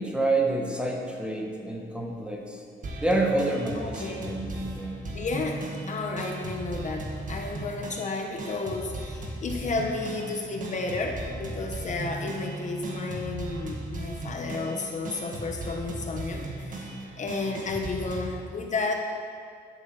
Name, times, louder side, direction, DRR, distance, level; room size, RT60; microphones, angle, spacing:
voice 1, 0.0-2.6 3.0-5.0, right 2 dB, 5° right, 0 dB, 1.2 m, -28 dB
sound 1, 2.8-18.4, right 2 dB, 45° right, 1.6 m, -37 dB
voice 2, 3.7-4.3 5.1-19.0, left 3 dB, 40° left, 3 dB, 1.0 m, -32 dB
12.0 x 7.9 x 6.3 m, 2.2 s
wide cardioid pair, 175°, 19 cm